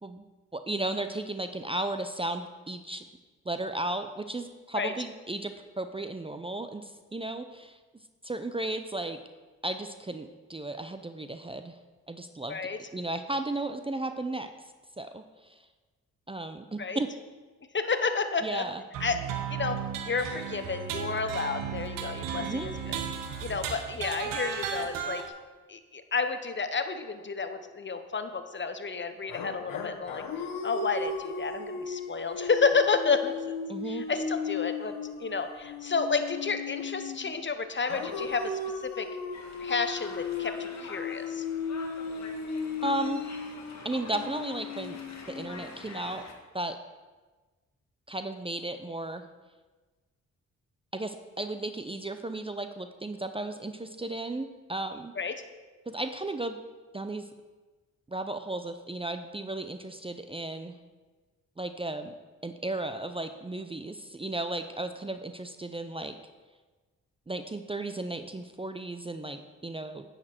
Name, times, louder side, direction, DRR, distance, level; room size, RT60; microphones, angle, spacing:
voice 1, 0.5-3.1 3.5-7.8 8.2-9.2 9.6-11.7 12.1-12.6 12.9-14.5 15.0-15.5 16.3-17.1 18.4-18.8 22.4-22.7 33.7-34.0 42.8-43.2 43.8-45.0 45.3-46.2 46.5-46.8 48.1-49.2 50.9-55.1 55.9-56.6 56.9-57.2 58.1-60.7 61.6-62.1 62.4-66.1 67.3-70.0, right 2 dB, 15° right, 8 dB, 0.6 m, -34 dB
voice 2, 12.5-12.8 16.8-17.0 17.7-18.7 19.0-19.2 19.5-19.8 20.1-23.0 23.4-25.2 25.7-30.2 30.6-33.4 33.9-39.1 39.6-41.4 55.2-55.4, left 4 dB, 35° left, 9 dB, 0.9 m, -31 dB
sound 1, 18.9-25.3, right 7 dB, 80° right, 0.9 m, -35 dB
sound 2, 29.3-37.3 37.9-46.0, left 5 dB, 85° left, 1.1 m, -36 dB
sound 3, 39.3-46.3, left 3 dB, 55° left, 1.5 m, -46 dB
9.8 x 6.7 x 4.5 m, 1.3 s
supercardioid pair, 45°, 33 cm